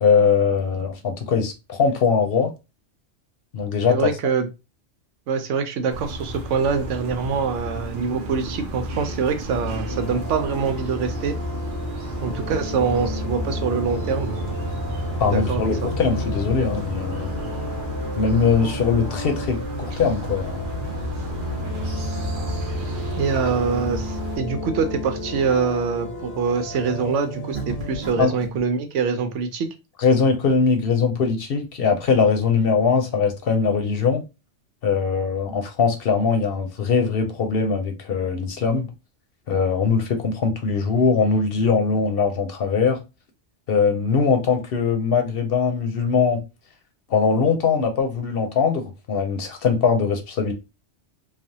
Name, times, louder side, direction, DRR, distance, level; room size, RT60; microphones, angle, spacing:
voice 1, 0.0-2.5 3.5-4.1 15.2-17.3 18.2-20.6 28.2-28.3 30.0-34.2 34.8-38.9 39.5-43.0 43.7-46.4 47.1-50.5, left 5 dB, 60° left, 0.8 m, -21 dB
voice 2, 3.9-4.5 5.3-11.3 12.2-14.4 15.3-15.7 23.2-29.7, right 5 dB, 90° right, 0.9 m, -24 dB
sound 1, 5.9-24.4, equal, 55° right, 0.7 m, -32 dB
sound 2, 9.5-28.0, left 1 dB, 90° left, 1.0 m, -32 dB
sound 3, 27.5-28.7, right 1 dB, 20° right, 0.8 m, -33 dB
3.3 x 2.1 x 2.7 m
omnidirectional pair, 1.2 m